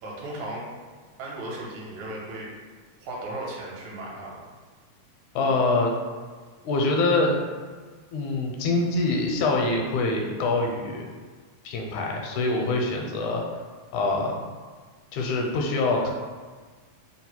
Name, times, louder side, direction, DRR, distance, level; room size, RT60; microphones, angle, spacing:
voice 1, 0.0-0.6 1.2-2.5 3.0-4.4, right 1 dB, 75° right, -4 dB, 2.0 m, -36 dB
voice 2, 5.4-5.9 6.7-7.4 8.1-11.1 11.7-13.4 13.9-14.3 15.1-16.1, left 2 dB, 80° left, 1 dB, 2.0 m, -24 dB
4.7 x 2.0 x 4.2 m, 1.4 s
omnidirectional pair, 3.4 m